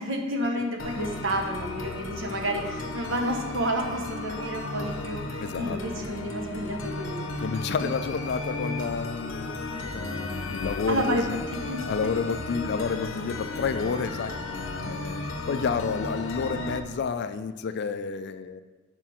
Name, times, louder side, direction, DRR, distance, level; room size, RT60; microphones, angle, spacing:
voice 1, 0.0-7.3 10.9-11.2 11.7-11.8 14.8-15.1, right 1 dB, 65° right, 3 dB, 1.0 m, -30 dB
sound 1, 0.8-16.8, left 2 dB, 70° left, 0.7 m, -34 dB
voice 2, 5.4-5.8 7.4-11.4 11.9-14.4 14.8-18.6, left 5 dB, 55° left, 11 dB, 0.4 m, -30 dB
5.8 x 4.5 x 6.2 m, 1.3 s
head